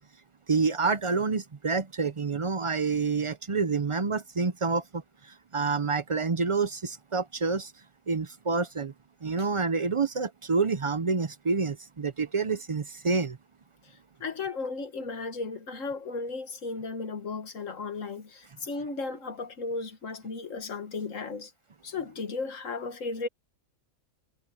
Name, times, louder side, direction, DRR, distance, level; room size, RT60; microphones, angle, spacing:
voice 1, 0.5-7.7 8.1-8.9 9.2-13.4, right 4 dB, 45° right, 0.4 m, -28 dB
voice 2, 13.8-21.5 21.8-23.3, left 4 dB, 60° left, 1.9 m, -35 dB
omnidirectional pair, 1.5 m